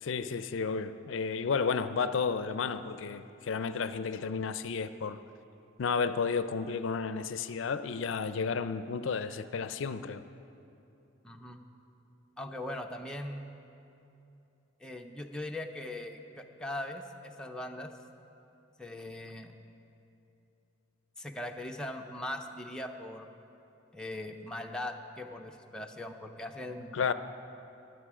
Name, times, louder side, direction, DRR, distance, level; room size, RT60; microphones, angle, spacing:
voice 1, 0.0-5.2 5.8-10.2 26.9-27.1, left 5 dB, 70° left, 12 dB, 0.4 m, -32 dB
voice 2, 11.2-11.6 12.4-13.4 14.8-17.9 18.8-19.5 21.2-23.3 23.9-27.1, left 1 dB, 5° left, 2 dB, 0.6 m, -40 dB
21.5 x 8.2 x 4.9 m, 2.8 s
head